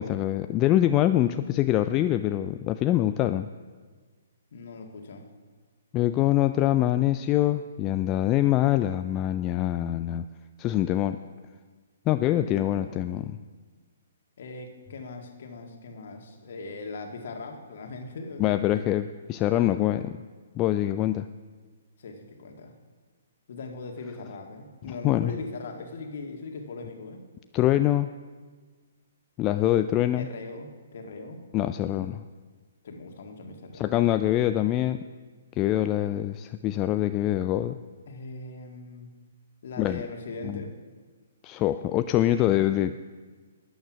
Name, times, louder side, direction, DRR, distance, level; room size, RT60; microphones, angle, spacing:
voice 1, 0.0-3.5 5.9-10.2 10.6-11.2 12.1-13.4 18.4-20.2 20.6-21.3 25.0-25.3 27.5-28.1 29.4-30.3 31.5-32.2 33.7-35.0 35.6-37.8 39.8-40.0 40.4-40.6 41.4-43.0, left 13 dB, 25° left, 10 dB, 0.3 m, -24 dB
voice 2, 4.5-5.2 12.3-13.0 14.4-18.9 22.0-22.7 23.5-27.2 30.1-31.4 32.8-33.9 38.1-39.1 39.6-40.7, left 3 dB, 50° left, 4 dB, 1.8 m, -40 dB
13.0 x 9.4 x 6.0 m, 1.4 s
figure-of-eight pair, 125°, 0 cm